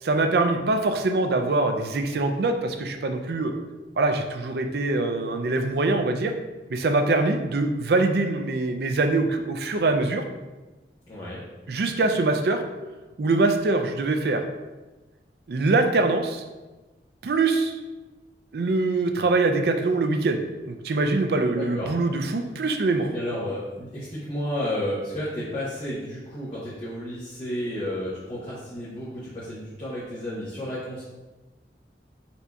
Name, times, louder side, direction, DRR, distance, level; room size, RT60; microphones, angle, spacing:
voice 1, 0.0-3.5 4.0-6.3 6.7-10.2 11.7-12.6 13.2-14.4 15.5-16.4 17.2-17.7 18.5-23.1, right 3 dB, 65° right, 6 dB, 0.4 m, -23 dB
voice 2, 11.1-11.4 21.6-21.9 23.1-31.0, left 1 dB, 30° left, -9 dB, 1.0 m, -32 dB
4.3 x 2.7 x 4.6 m, 1.1 s
head